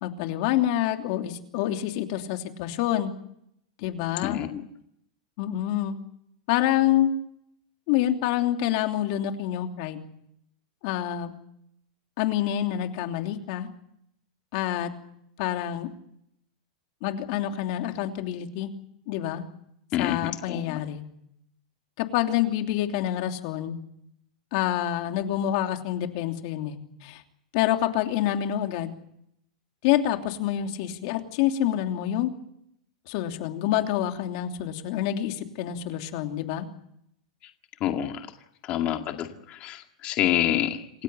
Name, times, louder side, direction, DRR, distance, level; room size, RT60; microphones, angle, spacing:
voice 1, 0.0-3.1 3.8-4.4 5.4-6.0 6.5-7.1 7.9-10.0 10.8-11.3 12.2-13.7 14.5-14.9 15.4-15.9 17.0-18.7 19.1-19.4 20.0-21.0 22.0-23.8 24.5-27.2 27.5-28.9 29.8-32.3 33.1-36.7, left 12 dB, 50° left, 5 dB, 3.0 m, -27 dB
voice 2, 4.2-4.6 19.9-20.8 37.8-38.3 38.6-41.0, left 11 dB, 35° left, 5 dB, 2.1 m, -28 dB
28.0 x 16.0 x 9.1 m, 0.75 s
supercardioid pair, 155°, 4 cm